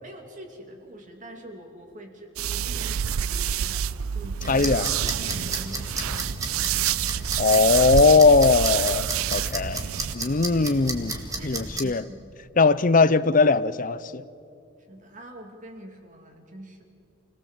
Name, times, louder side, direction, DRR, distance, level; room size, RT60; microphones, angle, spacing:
voice 1, 0.0-7.4 10.2-10.6 11.3-12.3 14.9-16.8, right 1 dB, 35° right, 2 dB, 2.6 m, -44 dB
sound 1, 2.4-10.2, right 9 dB, 90° right, 0.5 m, -28 dB
sound 2, 4.4-11.8, right 2 dB, 15° right, 1.9 m, -34 dB
voice 2, 4.5-4.9 7.4-9.8 10.1-12.0 12.6-14.2, left 4 dB, 40° left, 17 dB, 0.6 m, -20 dB
28.5 x 18.5 x 7.5 m, 2.6 s
head